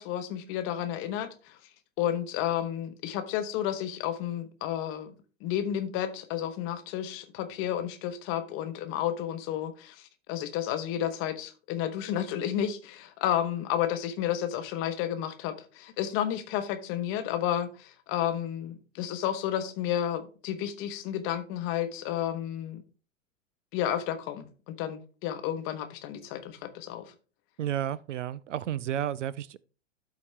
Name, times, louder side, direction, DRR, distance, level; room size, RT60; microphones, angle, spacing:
voice 1, 0.0-1.6 2.0-5.1 5.4-22.8 23.7-27.0, left 10 dB, 35° left, 0.9 m, -31 dB
voice 2, 27.6-29.6, right 11 dB, 70° right, 0.5 m, -32 dB
12.5 x 4.1 x 3.2 m
figure-of-eight pair, 95°, 38 cm